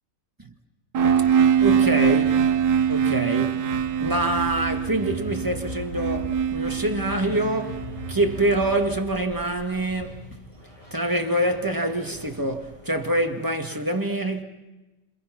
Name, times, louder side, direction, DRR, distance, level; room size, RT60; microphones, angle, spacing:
sound 1, 0.9-8.8, right 7 dB, 65° right, 1.6 m, -23 dB
sound 2, 1.1-13.0, left 3 dB, 20° left, 3.4 m, -40 dB
voice 1, 1.6-2.4 2.9-3.6 4.0-7.8 8.1-10.2 10.9-14.4, right 1 dB, 10° right, 1.6 m, -25 dB
28.5 x 27.0 x 5.9 m
omnidirectional pair, 1.9 m